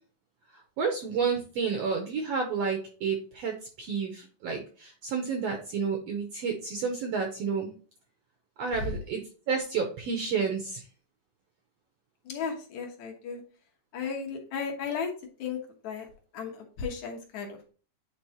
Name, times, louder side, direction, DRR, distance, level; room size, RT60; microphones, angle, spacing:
voice 1, 0.8-7.7 8.6-9.2 9.5-10.8, right 5 dB, 70° right, 3 dB, 1.6 m, -30 dB
voice 2, 12.2-13.4 13.9-15.1 15.4-16.1 16.3-17.7, left 5 dB, 65° left, 1 dB, 2.3 m, -35 dB
9.4 x 3.8 x 2.9 m, 0.39 s
omnidirectional pair, 3.9 m